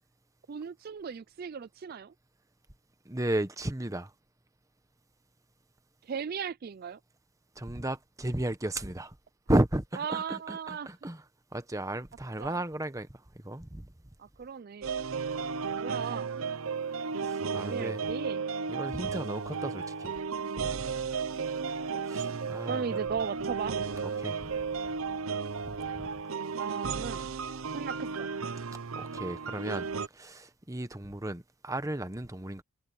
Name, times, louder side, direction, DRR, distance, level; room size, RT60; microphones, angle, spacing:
voice 1, 0.5-2.1 6.1-7.0 10.0-10.9 12.4-12.6 14.2-14.9 15.7-16.3 17.6-18.4 22.6-23.8 26.5-27.2 27.7-28.3, right 6 dB, 45° right, 0.4 m, -37 dB
voice 2, 3.0-4.1 7.6-9.2 9.5-11.2 11.5-13.9 17.2-18.1 18.7-20.1 22.0-23.0 24.0-24.5 25.6-26.2 26.5-26.6 29.0-32.6, right 1 dB, 15° right, 1.0 m, -34 dB
sound 1, 14.8-30.1, right 5 dB, 80° right, 0.8 m, -34 dB
head